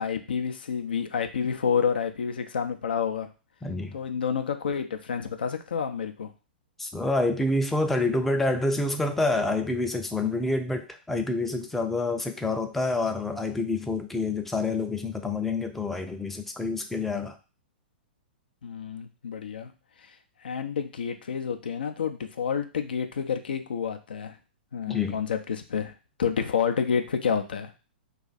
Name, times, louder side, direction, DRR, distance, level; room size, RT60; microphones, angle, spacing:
voice 1, 0.0-3.3 3.9-6.3 18.6-19.7 20.4-24.3 24.7-25.9 26.2-27.7, left 7 dB, 70° left, 7 dB, 0.4 m, -29 dB
voice 2, 3.6-3.9 6.8-17.3 24.9-25.2, left 2 dB, 5° left, 5 dB, 0.4 m, -27 dB
2.4 x 2.4 x 4.0 m, 0.33 s
figure-of-eight pair, 110°, 5 cm